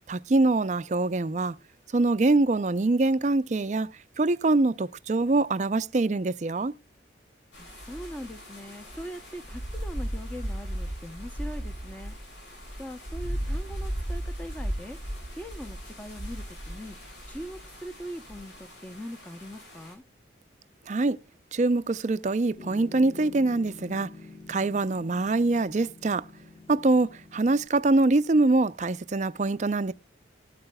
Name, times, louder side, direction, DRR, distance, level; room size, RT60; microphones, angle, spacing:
voice 1, 0.1-1.6 1.9-3.9 4.2-6.7 20.9-21.2 21.5-24.1 24.5-26.2 26.7-29.9, right 2 dB, 40° right, 0.4 m, -24 dB
sound 1, 7.5-19.9, equal, 85° left, 7.3 m, -37 dB
voice 2, 7.6-12.2 12.8-15.0 15.4-17.0 17.3-20.0, equal, 10° left, 0.6 m, -41 dB
Piano, 22.6-27.7, left 3 dB, 50° left, 4.5 m, -47 dB
19.5 x 8.8 x 2.2 m
head